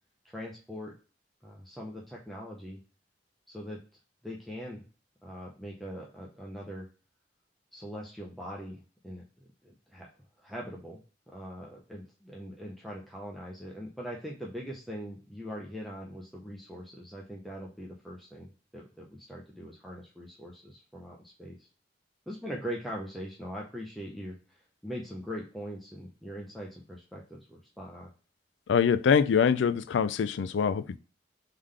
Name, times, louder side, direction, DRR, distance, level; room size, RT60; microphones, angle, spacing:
voice 1, 0.2-0.9 1.4-2.8 3.5-3.8 4.2-4.8 5.2-6.9 7.7-9.2 9.6-10.1 10.4-11.0 11.3-21.7 22.3-28.1, equal, ahead, 0.6 m, -41 dB
voice 2, 28.7-31.0, left 6 dB, 85° left, 0.4 m, -24 dB
3.7 x 3.6 x 3.2 m
head